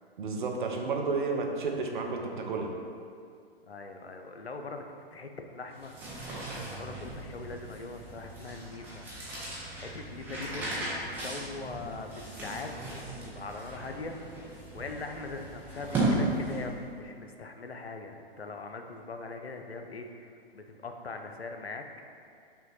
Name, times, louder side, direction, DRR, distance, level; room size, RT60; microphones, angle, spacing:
voice 1, 0.2-2.7, right 4 dB, 55° right, 2 dB, 0.6 m, -31 dB
voice 2, 3.6-4.8 5.1-6.2 6.5-9.1 9.8-10.9 11.1-12.7 13.2-21.8, left 3 dB, 90° left, 5 dB, 0.5 m, -41 dB
sound 1, 5.7-16.9, right 2 dB, 5° right, 0.5 m, -36 dB
5.5 x 2.2 x 3.9 m, 2.3 s
figure-of-eight pair, 115°, 31 cm